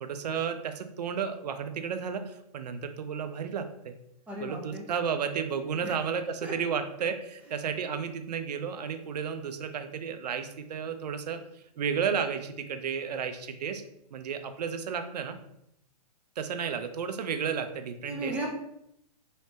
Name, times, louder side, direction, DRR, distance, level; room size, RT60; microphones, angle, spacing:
voice 1, 0.0-4.0 4.4-11.4 11.8-13.8 14.1-15.4 16.4-18.3, right 7 dB, 75° right, 9 dB, 0.5 m, -32 dB
voice 2, 4.3-4.9 5.8-6.0 6.4-6.5 18.1-18.5, right 1 dB, 5° right, -3 dB, 0.6 m, -35 dB
3.2 x 2.8 x 3.2 m, 0.78 s
hypercardioid pair, 145°, 21 cm